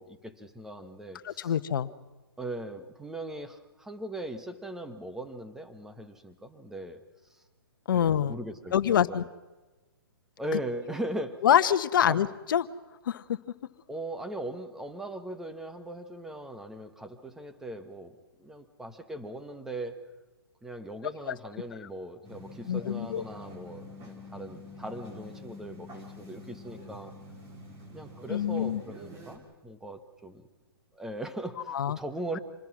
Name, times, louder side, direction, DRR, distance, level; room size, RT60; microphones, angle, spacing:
voice 1, 0.0-1.6 2.4-7.0 7.9-9.3 10.4-11.4 12.1-12.2 13.9-20.0 20.6-27.1 27.9-30.5 30.9-32.4, right 1 dB, 5° right, 8 dB, 1.3 m, -39 dB
voice 2, 1.2-1.9 7.9-8.4 8.7-9.2 10.5-10.6 11.4-12.7 13.1-13.2 21.3-21.4 22.7-23.2 28.3-28.8 31.7-32.0, left 9 dB, 55° left, 13 dB, 1.2 m, -25 dB
sound 1, 22.2-29.4, left 2 dB, 20° right, 3.8 m, -46 dB
27.0 x 20.5 x 6.2 m, 1.2 s
hypercardioid pair, 150°, 13 cm